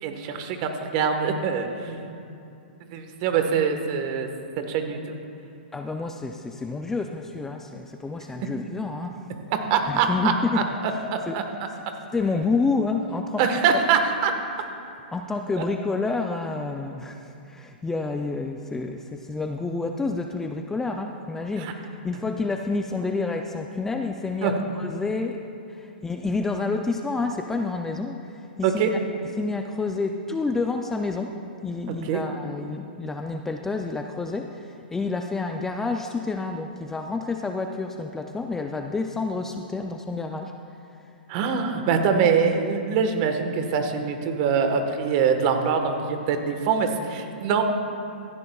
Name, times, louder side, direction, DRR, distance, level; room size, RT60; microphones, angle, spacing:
voice 1, 0.0-2.1 2.9-4.3 4.7-5.0 9.5-10.6 11.1-11.4 13.4-14.3 21.6-21.7 24.4-24.5 28.6-28.9 32.0-32.2 41.3-47.6, right 6 dB, 40° right, 5 dB, 1.3 m, -24 dB
voice 2, 5.7-9.2 9.9-11.4 12.1-13.8 15.1-25.4 25.7-29.0 29.4-31.3 31.6-40.5, left 3 dB, 10° left, 4 dB, 0.4 m, -29 dB
16.5 x 14.5 x 2.3 m, 2.6 s
hypercardioid pair, 145°, 5 cm